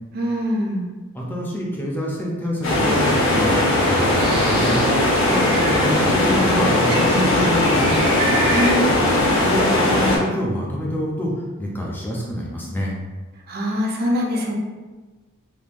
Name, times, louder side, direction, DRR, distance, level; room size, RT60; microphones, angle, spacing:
voice 1, 0.1-0.9 8.5-8.9 13.5-14.5, equal, 45° right, 0 dB, 0.4 m, -23 dB
voice 2, 1.1-4.8 5.3-7.9 9.4-12.9, equal, 10° left, -3 dB, 0.5 m, -26 dB
sound 1, 2.6-10.2, left 1 dB, 60° left, 0.7 m, -18 dB
Bird, 3.7-9.2, right 1 dB, 80° right, 1.0 m, -30 dB
3.4 x 2.2 x 2.5 m, 1.3 s
head